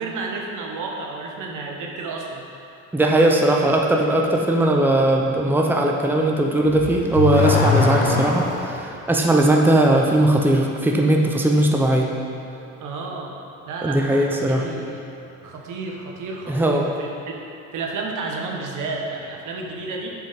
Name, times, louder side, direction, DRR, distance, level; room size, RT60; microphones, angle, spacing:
voice 1, 0.0-2.4 12.8-13.4 13.7-15.0 15.4-17.4 17.7-20.1, right 3 dB, 65° right, 0 dB, 1.3 m, -31 dB
voice 2, 2.9-12.1 13.8-14.7 16.5-16.9, right 1 dB, 5° right, 0 dB, 0.8 m, -19 dB
Car / Accelerating revving vroom, 6.6-8.9, left 5 dB, 90° left, 1.0 m, -21 dB
7.3 x 5.2 x 5.2 m, 2.7 s
supercardioid pair, 70°, 33 cm